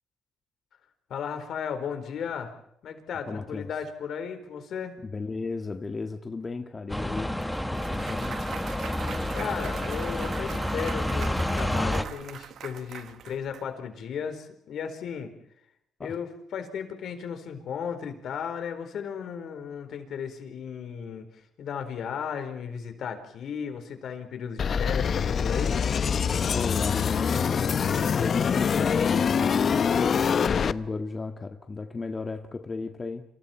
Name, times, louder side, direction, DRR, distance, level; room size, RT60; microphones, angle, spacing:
voice 1, 1.1-2.5 2.8-5.0 9.3-15.3 16.0-21.3 21.6-25.8, left 7 dB, 70° left, 7 dB, 4.4 m, -35 dB
voice 2, 3.3-3.7 5.0-7.3 7.7-8.4 16.0-16.2 26.5-33.2, left 3 dB, 30° left, 5 dB, 1.7 m, -35 dB
sound 1, 6.9-12.0, left 1 dB, 5° left, 1.7 m, -29 dB
Clapping / Cheering / Applause, 7.4-13.6, right 9 dB, 70° right, 1.4 m, -42 dB
sound 2, 24.6-30.7, left 6 dB, 50° left, 0.9 m, -24 dB
29.5 x 27.0 x 4.5 m, 0.72 s
cardioid pair, 90°, 0 cm